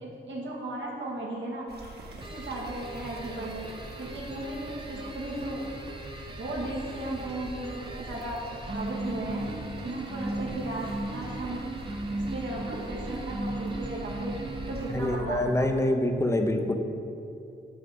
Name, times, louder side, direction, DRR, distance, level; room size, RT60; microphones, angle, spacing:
voice 1, 0.0-1.7 2.3-3.7 4.0-5.6 6.4-9.4 9.8-11.6 12.1-14.4 14.7-15.7, right 2 dB, 85° right, -3 dB, 1.7 m, -36 dB
Water Fountain, 1.7-15.2, right 1 dB, 60° right, 1.4 m, -43 dB
sound 1, 2.2-15.4, right 2 dB, 25° right, 0.8 m, -38 dB
voice 2, 14.9-16.7, left 1 dB, 15° left, 5 dB, 0.7 m, -25 dB
8.5 x 4.1 x 6.5 m, 2.7 s
wide cardioid pair, 105°, 19 cm